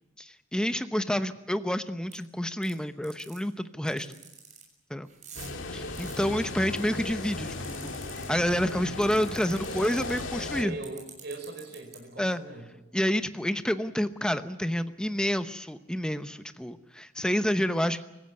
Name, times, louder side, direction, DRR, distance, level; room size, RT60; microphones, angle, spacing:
voice 1, 0.2-4.1 4.9-5.1 5.7-7.9 8.3-10.8 12.2-12.4 12.9-18.0, equal, 5° left, 9 dB, 0.9 m, -29 dB
sound 1, 2.1-2.2 2.6-2.7 3.0-3.4 3.9-4.6 5.1-6.8 7.2-8.2 8.7-8.8 9.0-10.2 10.8-12.0, right 8 dB, 40° right, 6.7 m, -47 dB
sound 2, 5.4-10.6, left 2 dB, 70° left, 2.2 m, -36 dB
voice 2, 9.6-10.1 10.6-12.7, right 2 dB, 60° right, 5 dB, 5.2 m, -41 dB
25.0 x 15.5 x 9.8 m, 0.98 s
head